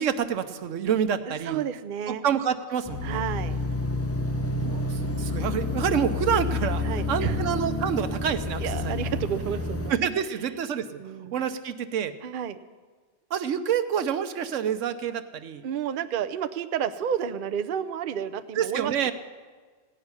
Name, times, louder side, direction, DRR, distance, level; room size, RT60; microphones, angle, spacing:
voice 1, 0.0-1.6 2.1-3.2 4.5-9.1 9.9-12.1 13.3-15.6 18.5-19.1, right 8 dB, 90° right, 11 dB, 1.1 m, -28 dB
voice 2, 1.3-2.2 3.0-3.6 6.8-7.4 8.6-9.9 11.0-11.4 12.2-12.6 15.6-19.1, right 8 dB, 55° right, 11 dB, 0.7 m, -31 dB
sound 1, 2.9-9.9, left 3 dB, 15° left, 0.7 m, -29 dB
16.5 x 5.8 x 9.6 m, 1.5 s
omnidirectional pair, 1.2 m